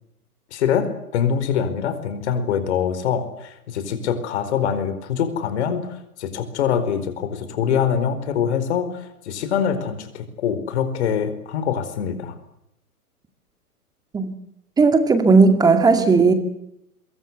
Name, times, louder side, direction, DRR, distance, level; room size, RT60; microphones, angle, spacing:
voice 1, 0.5-12.3, left 7 dB, 45° left, 10 dB, 4.8 m, -24 dB
voice 2, 14.8-16.3, right 4 dB, 10° right, 8 dB, 2.2 m, -15 dB
24.0 x 22.5 x 8.1 m, 0.79 s
figure-of-eight pair, 125°, 46 cm